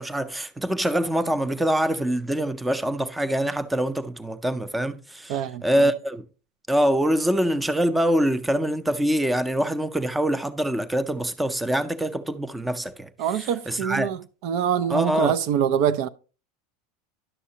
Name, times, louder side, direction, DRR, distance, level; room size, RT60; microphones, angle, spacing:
voice 1, 0.0-6.2 6.7-14.1 14.9-15.3, equal, 5° right, 0.6 m, -24 dB
voice 2, 5.3-5.9 13.2-16.1, right 9 dB, 60° right, 0.4 m, -25 dB
11.0 x 6.2 x 2.8 m
supercardioid pair, 115°, 0 cm